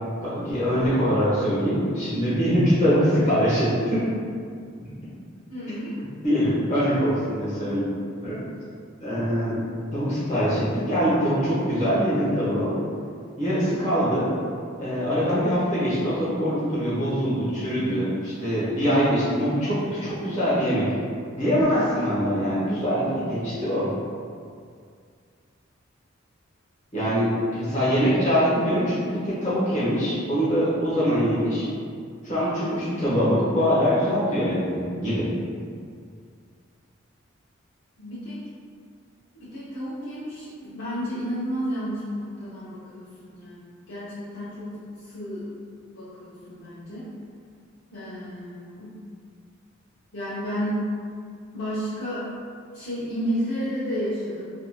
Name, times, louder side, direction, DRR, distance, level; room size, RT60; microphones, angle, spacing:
voice 1, 0.2-4.1 6.2-7.9 8.2-8.4 9.0-9.6 9.9-12.7 13.4-14.3 14.8-20.9 21.3-23.9 26.9-31.7 32.2-35.3, equal, 35° left, -10 dB, 1.0 m, -23 dB
voice 2, 5.5-6.0 38.0-38.4 39.3-44.7 45.0-45.5 45.9-47.1 47.9-48.9 50.1-50.8 51.5-52.2 52.7-54.4, equal, 85° left, -13 dB, 0.7 m, -32 dB
2.7 x 2.6 x 2.2 m, 2.2 s
head